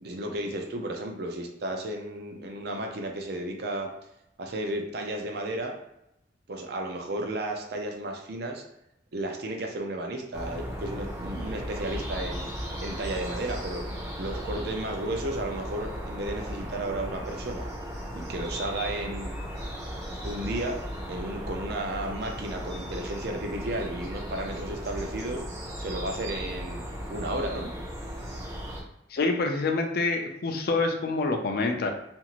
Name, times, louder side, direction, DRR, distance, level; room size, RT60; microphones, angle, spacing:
voice 1, 0.0-3.9 4.4-5.7 6.5-8.6 9.1-12.5 12.8-13.8 14.2-17.7 18.2-19.3 20.2-20.8 21.1-25.4 25.8-26.8 27.1-27.7, right 1 dB, 60° right, 2 dB, 0.5 m, -33 dB
sound 1, 10.3-28.8, equal, 20° right, 0.6 m, -36 dB
voice 2, 29.1-31.9, left 3 dB, 55° left, 4 dB, 0.4 m, -26 dB
2.6 x 2.4 x 2.9 m, 0.82 s
head